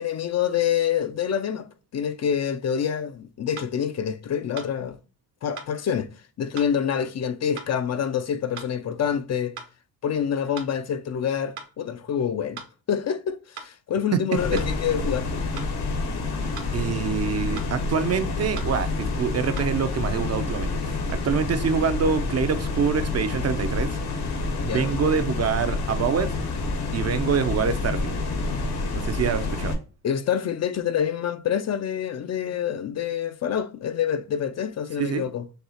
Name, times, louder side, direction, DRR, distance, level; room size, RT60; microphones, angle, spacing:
voice 1, 0.0-1.7 1.9-5.0 5.4-6.1 6.4-9.6 10.0-12.6 12.9-15.4 24.6-25.0 28.8-28.9 30.0-35.4, left 8 dB, 45° left, 0.5 m, -26 dB
sound 1, 3.6-3.7 4.6-4.7 5.6-5.7 6.6-6.7 7.6-7.7 8.6-8.7 9.6-9.7 10.6-10.7 11.6-11.7 12.6-12.7 13.6-13.7 14.6-14.7 15.6-15.7 16.6-16.7 17.6-17.7 18.6-18.7 19.6-19.7, right 6 dB, 75° right, 1.2 m, -39 dB
sound 2, 14.4-29.7, left 3 dB, 75° left, 1.5 m, -28 dB
voice 2, 16.7-23.9 24.6-26.3 26.9-28.1 28.9-29.7 35.0-35.2, right 6 dB, 40° right, 0.6 m, -25 dB
6.5 x 2.4 x 2.8 m
cardioid pair, 100°, 38 cm